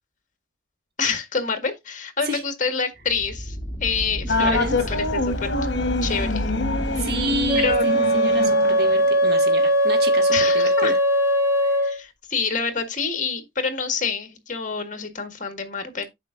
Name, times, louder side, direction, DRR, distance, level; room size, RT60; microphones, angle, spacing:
voice 1, 1.0-5.5 6.0-6.5 6.9-7.1 7.5-8.4 10.3-10.9 11.8-16.1, left 5 dB, 40° left, 1.7 m, -27 dB
sound 1, 3.0-7.8, equal, 15° left, 2.6 m, -31 dB
sound 2, 4.3-9.1, left 2 dB, 65° left, 1.2 m, -26 dB
voice 2, 4.4-4.8 7.0-11.0 11.6-11.9, right 2 dB, 55° right, 1.7 m, -30 dB
Wind instrument woodwind instrument, 7.5-12.0, equal, 15° right, 2.2 m, -19 dB
9.1 x 6.6 x 2.5 m
head